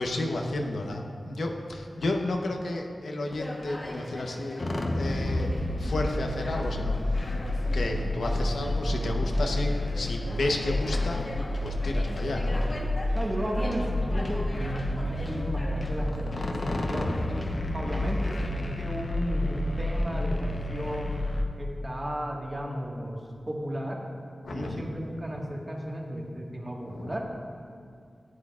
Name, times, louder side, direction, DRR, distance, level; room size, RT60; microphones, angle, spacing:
voice 1, 0.0-7.4 7.7-11.2 11.6-12.6 17.8-18.1 24.4-24.9 26.8-27.2, left 2 dB, 85° left, 2 dB, 0.9 m, -32 dB
Conversation, 3.3-18.5, left 1 dB, 40° left, 1.1 m, -42 dB
sound 1, 4.6-21.4, left 1 dB, 60° left, 0.8 m, -30 dB
voice 2, 13.1-17.2 17.7-21.2 21.6-23.2 23.5-24.0 24.5-27.2, equal, 30° right, -1 dB, 1.6 m, -34 dB
14.0 x 9.4 x 2.4 m, 2.3 s
wide cardioid pair, 65°, 0 cm